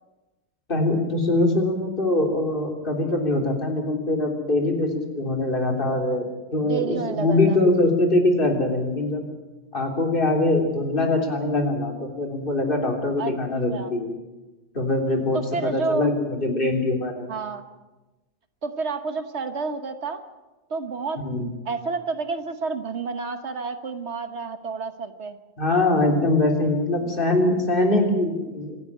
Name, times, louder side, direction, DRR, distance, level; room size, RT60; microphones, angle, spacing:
voice 1, 0.7-6.3 6.5-9.3 9.7-14.1 14.7-17.3 21.2-21.5 25.6-28.7, left 2 dB, 50° left, 2 dB, 3.6 m, -23 dB
voice 2, 6.6-7.6 13.2-13.3 13.7-13.9 15.3-16.1 17.3-17.7 18.6-20.2 20.7-21.2 21.6-25.4, right 4 dB, 70° right, 9 dB, 1.5 m, -29 dB
25.0 x 11.0 x 9.9 m, 1.1 s
omnidirectional pair, 1.2 m